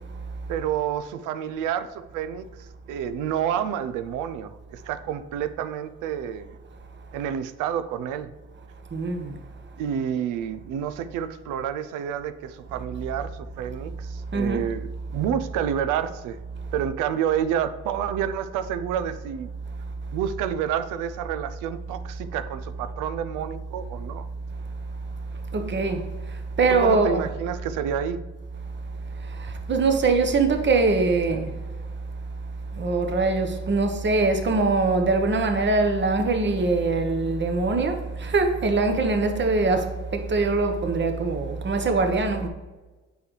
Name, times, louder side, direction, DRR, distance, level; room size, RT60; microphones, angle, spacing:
voice 1, 0.5-6.6 7.1-8.3 9.8-16.4 16.7-19.5 20.1-24.3 26.7-28.2, right 9 dB, 85° right, 0.5 m, -29 dB
voice 2, 8.9-9.4 14.3-14.6 25.5-27.2 29.2-31.6 32.7-42.5, right 3 dB, 35° right, 1.0 m, -23 dB
8.2 x 4.9 x 3.2 m
supercardioid pair, 75°, 30 cm